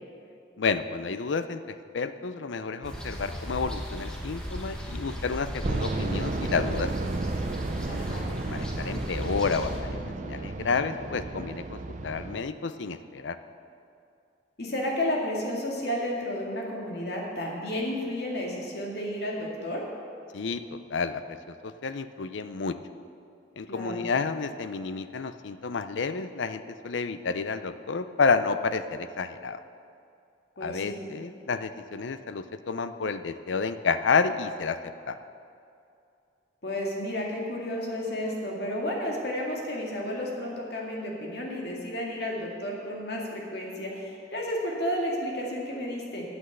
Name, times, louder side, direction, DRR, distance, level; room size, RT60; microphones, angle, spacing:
voice 1, 0.6-7.1 8.3-13.4 20.3-22.8 23.6-29.6 30.6-35.2, left 4 dB, 85° left, 11 dB, 0.5 m, -30 dB
sound 1, 2.8-9.8, equal, 5° left, 1.2 m, -37 dB
sound 2, 5.6-12.4, right 2 dB, 40° right, 0.5 m, -33 dB
voice 2, 7.9-8.3 14.6-19.8 23.7-24.0 30.6-31.0 36.6-46.2, left 1 dB, 60° left, -2 dB, 2.2 m, -32 dB
9.6 x 8.1 x 7.7 m, 2.5 s
head